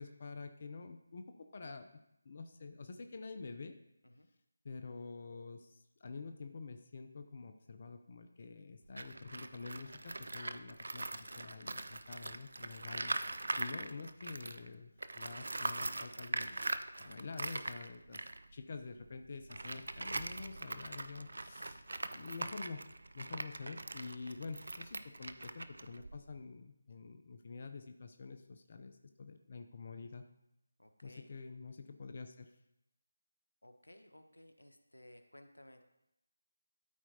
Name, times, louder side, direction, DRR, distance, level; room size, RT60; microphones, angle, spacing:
voice 1, 0.0-3.8 4.6-16.6 17.0-18.2 18.5-21.9 22.1-22.9 23.1-30.2 31.0-32.5, left 4 dB, 40° left, 7 dB, 0.6 m, -48 dB
Tools, 8.9-14.7 15.0-26.4, right 2 dB, 65° right, 0.4 m, -42 dB
voice 2, 21.5-21.9 30.8-31.3 33.6-35.8, left 1 dB, 90° left, 7 dB, 0.9 m, -59 dB
12.5 x 4.4 x 2.8 m, 0.83 s
figure-of-eight pair, 160°, 0 cm